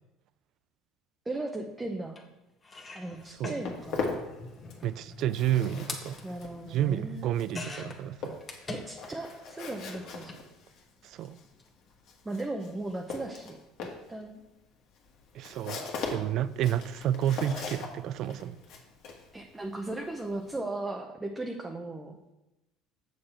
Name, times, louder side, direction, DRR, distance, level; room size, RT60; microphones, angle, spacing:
voice 1, 1.3-2.2 2.9-4.2 6.2-7.4 8.7-10.3 12.2-13.6 14.1-14.4 19.3-22.2, right 2 dB, 15° right, 0.7 m, -37 dB
sound 1, 2.2-2.3 2.6-9.3 9.6-10.4 11.4-11.6 11.9-12.0, left 3 dB, 25° left, 1.3 m, -44 dB
Walk footsteps, 3.2-4.9 5.2-20.6, left 4 dB, 60° left, 1.5 m, -40 dB
voice 2, 4.8-6.2 6.7-8.4 11.1-11.4 15.3-15.8 16.1-18.6, right 11 dB, 55° right, 0.3 m, -30 dB
7.2 x 6.7 x 4.3 m
supercardioid pair, 110°, 0 cm